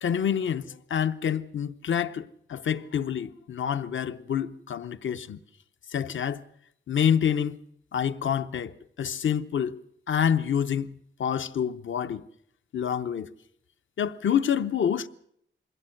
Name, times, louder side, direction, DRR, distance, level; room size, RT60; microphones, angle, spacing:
voice 1, 0.0-2.2 2.5-5.4 5.9-6.4 6.9-7.6 7.9-8.7 9.0-9.8 10.1-12.2 12.7-13.3 14.0-15.1, left 8 dB, 70° left, 0.8 m, -27 dB
22.0 x 16.5 x 7.7 m
wide cardioid pair, 170°, 20 cm